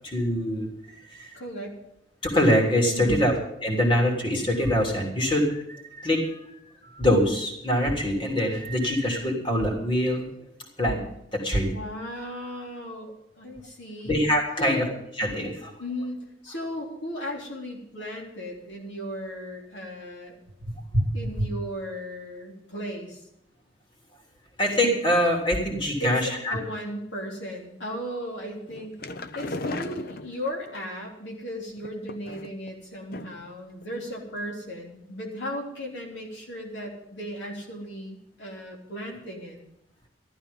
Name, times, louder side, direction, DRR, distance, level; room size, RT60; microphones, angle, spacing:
voice 1, 0.0-1.3 2.2-3.3 3.6-10.3 10.8-11.0 11.3-11.7 14.0-14.9 15.2-15.7 20.7-21.0 21.4-21.5 24.6-26.6, equal, 30° left, 0 dB, 3.2 m, -24 dB
voice 2, 1.3-1.8 2.9-3.3 11.7-14.1 14.6-14.9 15.8-20.3 21.1-23.2 26.0-29.0 29.3-39.6, equal, 85° left, -1 dB, 3.4 m, -36 dB
sound 1, 28.7-30.8 31.8-32.7 33.1-33.5 33.8-33.9 34.3-34.4, left 2 dB, 55° left, 0.8 m, -36 dB
14.0 x 12.5 x 5.5 m, 0.79 s
head